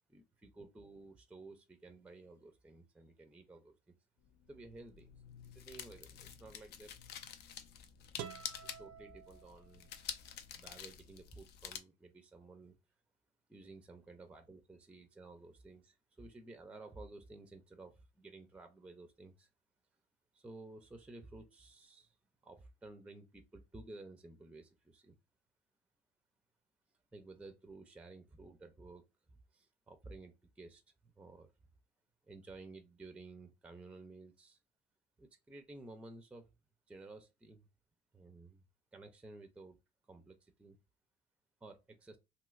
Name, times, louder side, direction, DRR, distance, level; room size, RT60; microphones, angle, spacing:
voice 1, 0.1-3.9 4.5-5.1 5.5-6.9 8.6-9.9 10.5-12.8 13.5-19.5 20.3-22.2 22.4-25.2 27.1-31.5 32.3-34.6 35.2-36.5 36.9-37.7 38.1-38.6 38.9-39.8 40.0-40.8 41.6-42.2, right 2 dB, 5° right, 0.4 m, -54 dB
sound 1, 4.2-11.8, left 8 dB, 75° left, 0.5 m, -49 dB
sound 2, 8.2-10.1, right 9 dB, 80° right, 0.4 m, -49 dB
3.0 x 2.8 x 2.3 m
cardioid pair, 110°, 17 cm